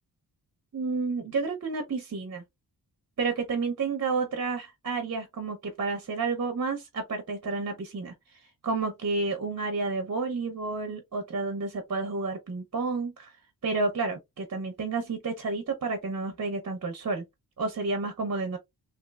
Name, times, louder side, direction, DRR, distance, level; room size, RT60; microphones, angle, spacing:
voice 1, 0.7-2.4 3.2-13.3 13.6-17.2 17.6-18.6, right 4 dB, 40° right, 0.6 m, -30 dB
3.0 x 2.9 x 2.2 m
wide cardioid pair, 145°, 41 cm